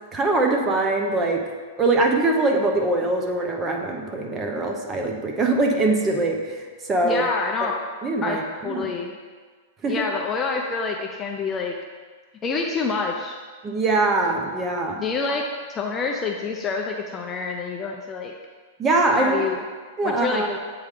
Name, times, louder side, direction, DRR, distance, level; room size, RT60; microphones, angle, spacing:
voice 1, 0.1-1.4 1.8-7.2 7.6-7.7 8.0-8.9 9.8-10.0 13.6-15.0 18.8-19.4 20.0-20.6, right 2 dB, 15° right, 2 dB, 0.7 m, -22 dB
voice 2, 7.0-7.8 8.2-9.2 9.9-11.8 12.4-13.4 15.0-18.3 19.1-19.6 20.0-20.4, left 4 dB, 15° left, 1 dB, 0.4 m, -27 dB
7.9 x 3.5 x 4.9 m, 1.5 s
supercardioid pair, 160°, 0 cm